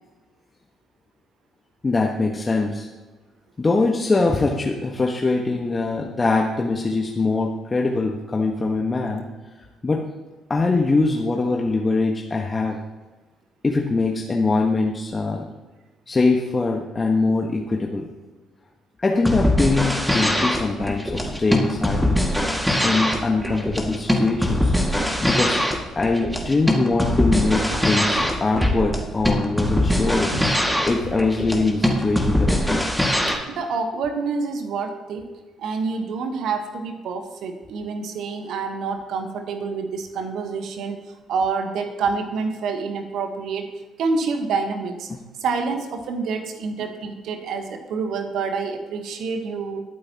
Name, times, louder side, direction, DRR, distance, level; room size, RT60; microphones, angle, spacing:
voice 1, 1.8-2.9 3.6-9.3 9.8-10.0 10.5-12.8 13.6-15.4 16.1-18.1 19.0-22.2 22.8-24.7 25.2-25.6 25.9-30.3 30.8-32.9 45.1-45.2, left 3 dB, 30° left, 0 dB, 1.4 m, -22 dB
sound 1, 19.2-33.4, left 1 dB, 5° right, 2.1 m, -22 dB
sound 2, 20.8-22.2 22.4-23.0 23.5-23.7 24.1-24.3 25.2-25.3 25.6-25.8 26.3-32.2, equal, 90° right, 4.4 m, -38 dB
voice 2, 33.3-35.3 35.6-43.7 44.0-45.1 45.4-49.8, right 4 dB, 60° right, 6 dB, 1.3 m, -27 dB
21.0 x 8.6 x 3.0 m, 1.2 s
figure-of-eight pair, 45°, 0 cm